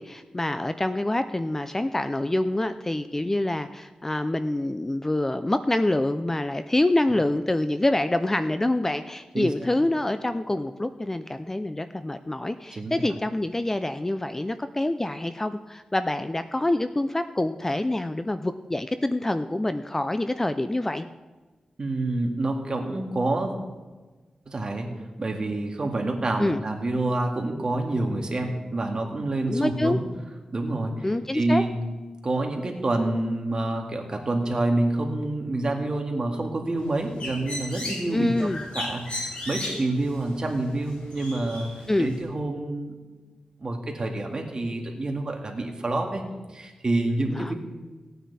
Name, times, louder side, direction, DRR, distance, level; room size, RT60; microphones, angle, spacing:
voice 1, 0.0-21.1 26.4-26.6 29.5-30.0 31.0-31.6 38.1-38.6 41.9-42.1 47.3-47.5, left 1 dB, 20° left, 10 dB, 0.5 m, -26 dB
voice 2, 21.8-23.5 24.5-30.0 30.5-31.1 31.3-31.8 32.2-43.0 43.6-46.2 46.5-47.5, right 2 dB, 40° right, 2 dB, 2.1 m, -27 dB
Bird, 36.8-42.2, left 1 dB, 60° left, 3.1 m, -36 dB
17.5 x 9.3 x 4.2 m, 1.3 s
wide cardioid pair, 85°, 2 cm